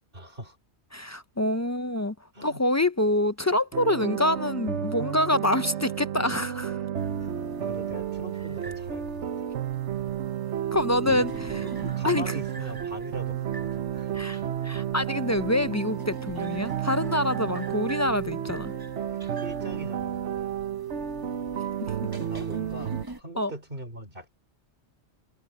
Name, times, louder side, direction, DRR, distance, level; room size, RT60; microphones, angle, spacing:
voice 1, 0.1-0.6 2.3-2.6 7.6-9.5 11.1-11.6 11.9-14.1 19.4-20.3 22.3-24.3, right 1 dB, 50° right, 4.0 m, -41 dB
voice 2, 0.9-2.1 2.4-6.8 10.7-12.3 14.1-14.4 14.6-18.7 23.4-23.5, left 1 dB, 25° left, 0.3 m, -26 dB
sound 1, 3.7-23.1, right 9 dB, 75° right, 1.2 m, -32 dB
sound 2, 7.0-23.2, right 2 dB, 20° right, 1.1 m, -46 dB
omnidirectional pair, 1.2 m